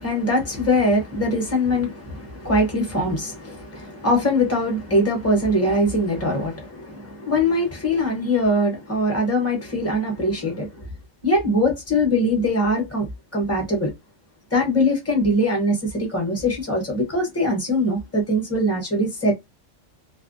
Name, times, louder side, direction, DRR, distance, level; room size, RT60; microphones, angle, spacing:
voice 1, 0.0-10.9 11.2-13.9 14.5-19.3, left 1 dB, 15° left, 0.9 m, -22 dB
2.4 x 2.1 x 2.6 m
omnidirectional pair, 1.3 m